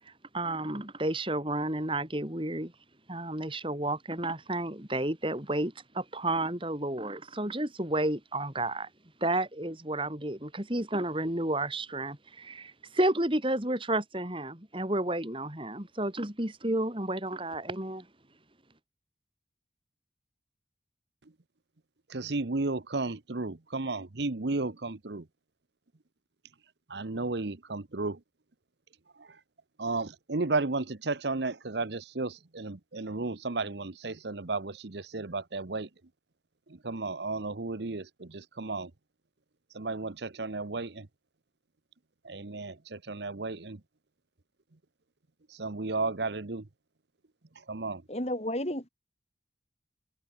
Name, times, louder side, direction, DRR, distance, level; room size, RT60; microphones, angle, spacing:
voice 1, 0.3-2.7 3.1-8.9 9.2-18.1, right 1 dB, 25° right, 3.0 m, -31 dB
voice 2, 22.1-25.2 26.9-28.2 29.2-29.3 29.8-35.9 36.8-38.9 39.7-41.1 42.2-43.8 45.5-46.6 47.7-48.0, right 3 dB, 65° right, 1.0 m, -33 dB
voice 3, 48.1-48.9, left 1 dB, 35° left, 4.3 m, -32 dB
head